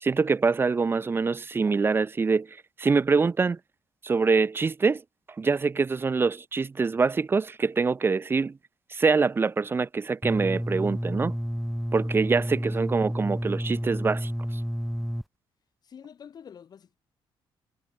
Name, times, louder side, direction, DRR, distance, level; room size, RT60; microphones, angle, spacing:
voice 1, 0.0-3.6 4.0-5.0 5.4-8.6 8.9-11.3 11.9-14.3, right 4 dB, 25° right, 1.1 m, -24 dB
sound 1, 10.2-15.2, equal, ahead, 0.7 m, -30 dB
voice 2, 15.8-17.0, left 7 dB, 45° left, 7.0 m, -47 dB
cardioid pair, 150°, 10 cm